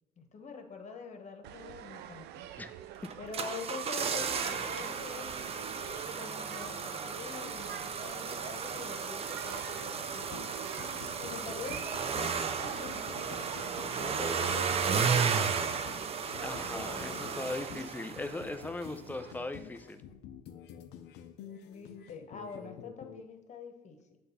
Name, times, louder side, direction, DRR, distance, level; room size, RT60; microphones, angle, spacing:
voice 1, 0.2-2.3 3.2-10.5 11.2-15.1 16.7-17.3 21.6-24.2, left 5 dB, 45° left, 5 dB, 1.3 m, -45 dB
sound 1, 1.4-19.3, right 11 dB, 80° right, 0.5 m, -47 dB
sound 2, 3.0-18.5 18.8-18.9, right 6 dB, 35° right, 0.6 m, -34 dB
sound 3, 10.3-23.2, left 8 dB, 85° left, 0.7 m, -49 dB
voice 2, 16.4-20.0, left 2 dB, 10° left, 9 dB, 0.5 m, -39 dB
7.7 x 3.5 x 5.6 m, 0.99 s
cardioid pair, 110°, 17 cm